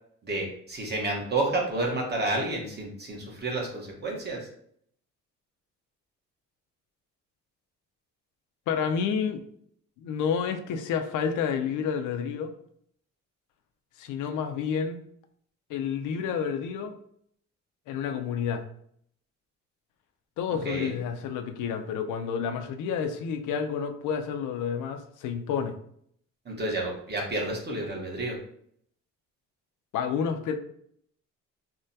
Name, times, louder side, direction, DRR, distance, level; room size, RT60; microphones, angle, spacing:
voice 1, 0.2-4.5 20.6-20.9 26.5-28.4, right 2 dB, 35° right, -1 dB, 1.0 m, -30 dB
voice 2, 8.7-9.4 10.0-12.5 14.0-15.0 15.7-17.0 17.9-18.6 20.4-25.7 29.9-30.5, left 7 dB, 80° left, 7 dB, 0.5 m, -29 dB
3.4 x 2.2 x 2.6 m, 0.66 s
cardioid pair, 90°, 30 cm